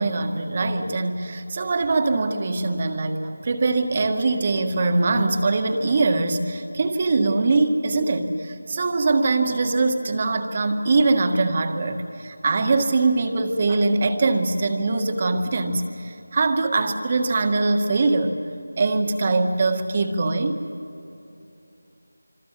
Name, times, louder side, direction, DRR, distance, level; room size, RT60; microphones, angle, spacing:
voice 1, 0.0-18.3 18.8-20.6, right 3 dB, 30° right, 6 dB, 1.7 m, -22 dB
26.0 x 25.5 x 7.6 m, 2.7 s
figure-of-eight pair, 170°, 0 cm